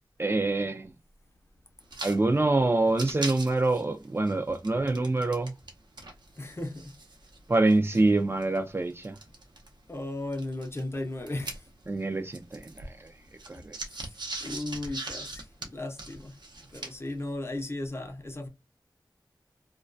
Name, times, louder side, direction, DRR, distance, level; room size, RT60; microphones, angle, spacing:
voice 1, 0.2-0.9 2.0-5.5 7.5-9.2 11.9-13.1 13.5-13.8, right 2 dB, 30° right, 0.3 m, -26 dB
sound 1, 1.8-2.2 2.5-2.6 2.9-5.7 6.0-9.7 10.3-12.0 12.3-17.1, right 2 dB, 70° right, 0.6 m, -41 dB
voice 2, 6.4-6.9 7.9-8.0 9.9-11.6 13.9-14.0 14.4-16.3 16.7-18.5, left 2 dB, 35° left, 0.6 m, -36 dB
2.3 x 2.2 x 2.5 m
wide cardioid pair, 80°, 8 cm